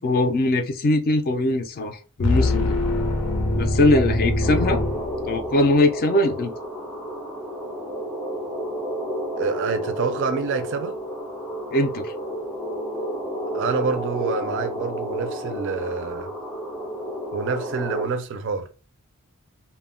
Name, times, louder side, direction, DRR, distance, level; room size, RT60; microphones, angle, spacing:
voice 1, 0.0-2.7 3.5-4.8 5.2-6.5 11.7-12.1, left 2 dB, 40° left, 0.4 m, -21 dB
sound 1, 2.2-5.7, left 2 dB, 90° left, 0.6 m, -23 dB
sound 2, 4.4-18.1, equal, ahead, 0.6 m, -31 dB
voice 2, 9.4-11.0 13.5-16.3 17.3-18.7, right 5 dB, 55° right, 0.4 m, -27 dB
2.1 x 2.0 x 3.6 m
head